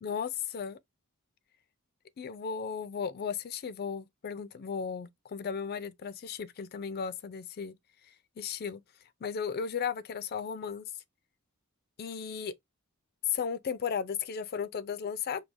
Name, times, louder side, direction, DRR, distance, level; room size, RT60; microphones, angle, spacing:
voice 1, 0.0-0.8 2.2-7.7 8.0-8.8 9.2-10.9 12.0-12.5 13.3-15.4, left 7 dB, 45° left, 0.4 m, -35 dB
4.6 x 2.8 x 2.6 m
head